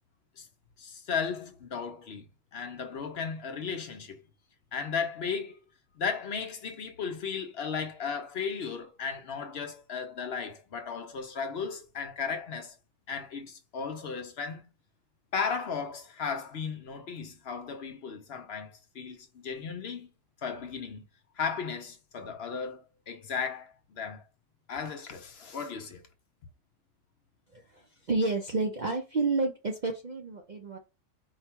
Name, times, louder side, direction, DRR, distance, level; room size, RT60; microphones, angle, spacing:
voice 1, 0.8-2.3 2.5-4.2 4.7-5.6 6.0-12.7 13.1-14.7 15.3-20.1 20.4-21.0 21.4-24.2 24.7-26.0, left 6 dB, 60° left, 0.8 m, -35 dB
voice 2, 27.5-30.8, right 3 dB, 55° right, 0.5 m, -30 dB
4.7 x 2.2 x 4.4 m
omnidirectional pair, 1.4 m